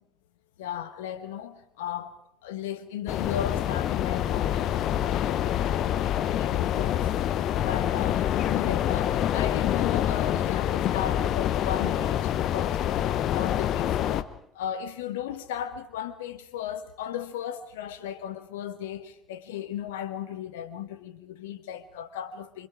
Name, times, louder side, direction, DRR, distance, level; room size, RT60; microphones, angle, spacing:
voice 1, 0.6-2.2 2.4-6.0 6.3-7.1 7.6-12.8 13.3-14.3 14.5-22.7, left 9 dB, 70° left, 1.3 m, -36 dB
sound 1, 3.1-14.2, left 11 dB, 55° left, 1.0 m, -26 dB
27.5 x 25.5 x 4.9 m
figure-of-eight pair, 55°, 0 cm